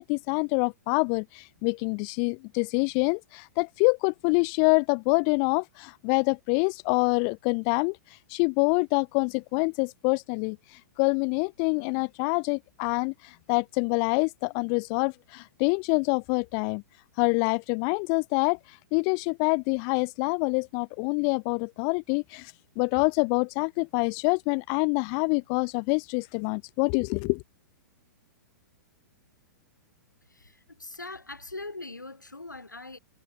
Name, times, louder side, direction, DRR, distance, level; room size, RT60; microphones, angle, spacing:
voice 1, 0.0-16.8 17.2-27.4, left 40 dB or more, 30° left, 0.4 m, -26 dB
voice 2, 30.3-33.0, left 2 dB, 80° left, 6.3 m, -41 dB
figure-of-eight pair, 105°, 10 cm